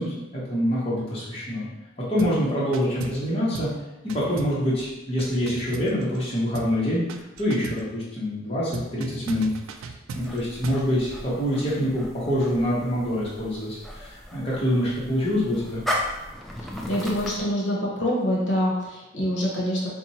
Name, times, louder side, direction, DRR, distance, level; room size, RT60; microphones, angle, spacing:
voice 1, 0.0-1.7 2.1-3.7 4.1-7.0 7.4-9.5 9.8-15.8, equal, 30° left, -8 dB, 1.0 m, -25 dB
sound 1, 2.2-2.4 2.7-3.3 3.5-3.8 4.1-6.3 6.5-6.8 7.1-7.9 8.7-10.9, right 4 dB, 85° right, 0.3 m, -38 dB
sound 2, 10.1-17.4, equal, ahead, 0.3 m, -36 dB
voice 2, 16.9-19.9, equal, 60° left, -4 dB, 1.0 m, -25 dB
4.2 x 2.3 x 4.1 m, 1.0 s
head